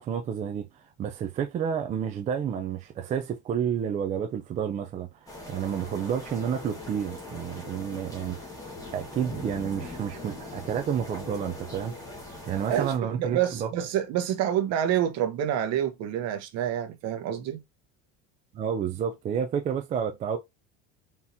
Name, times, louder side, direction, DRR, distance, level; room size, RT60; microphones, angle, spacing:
voice 1, 0.0-8.4 8.9-12.0 12.5-13.7 18.5-20.4, right 8 dB, 25° right, 0.3 m, -30 dB
sound 1, 5.3-13.0, left 2 dB, 10° left, 1.5 m, -41 dB
voice 2, 12.7-17.6, right 10 dB, 55° right, 1.1 m, -27 dB
4.3 x 3.5 x 2.7 m
cardioid pair, 160°, 31 cm